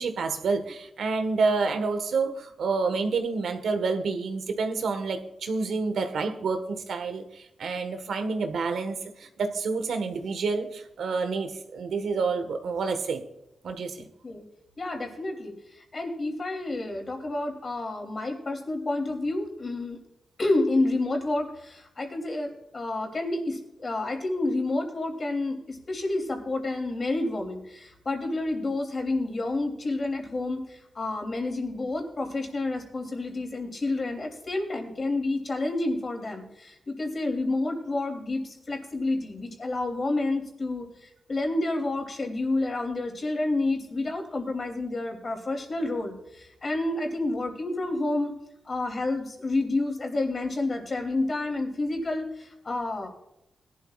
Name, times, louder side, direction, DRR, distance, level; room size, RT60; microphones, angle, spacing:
voice 1, 0.0-13.2 13.6-14.1, right 4 dB, 90° right, 7 dB, 1.4 m, -28 dB
voice 2, 14.8-20.0 20.4-48.3 48.6-53.1, left 2 dB, 40° left, 3 dB, 3.1 m, -29 dB
21.0 x 12.0 x 2.4 m, 0.86 s
wide cardioid pair, 125°, 0 cm